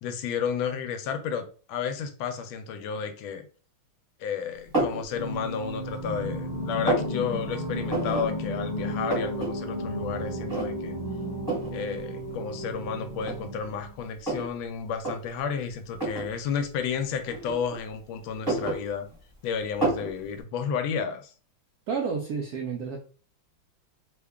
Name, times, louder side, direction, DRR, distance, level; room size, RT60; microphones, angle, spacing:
voice 1, 0.0-3.5 4.2-11.0 11.7-19.1 19.4-21.3, left 6 dB, 80° left, 8 dB, 1.3 m, -32 dB
sound 1, 4.7-5.1 5.6-6.2 6.5-7.1 7.9-8.3 8.6-8.7 8.9-9.5 9.8-9.9 10.5-11.0 11.5-11.7 12.6-12.7 13.2-14.5 14.9-15.2 15.9-16.3 17.3-17.9 18.3-19.3 19.8-20.1, right 2 dB, 15° right, 0.8 m, -29 dB
Singing, 5.1-14.0, equal, 35° left, 0.6 m, -33 dB
voice 2, 21.9-23.0, right 5 dB, 80° right, 1 dB, 0.8 m, -30 dB
3.4 x 2.2 x 3.5 m, 0.38 s
omnidirectional pair, 2.2 m